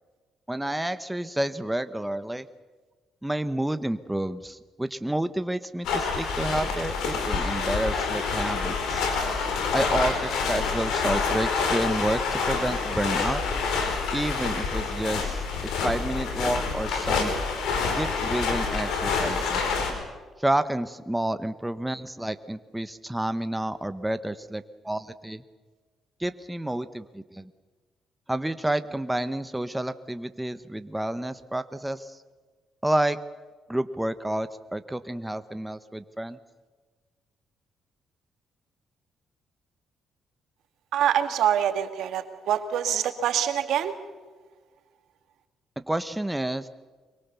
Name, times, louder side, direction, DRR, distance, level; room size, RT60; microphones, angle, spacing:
voice 1, 0.5-2.5 3.2-9.0 9.7-13.4 14.1-15.4 15.7-17.3 17.9-19.8 20.4-25.4 26.2-27.5 28.3-32.2 32.8-33.2 33.7-36.4 45.8-46.7, right 1 dB, 5° right, 11 dB, 1.0 m, -29 dB
sound 1, 5.8-19.9, left 4 dB, 85° left, 4.8 m, -27 dB
voice 2, 40.9-43.9, right 10 dB, 80° right, 8 dB, 2.1 m, -25 dB
24.5 x 22.5 x 7.0 m, 1.4 s
cardioid pair, 90°, 0 cm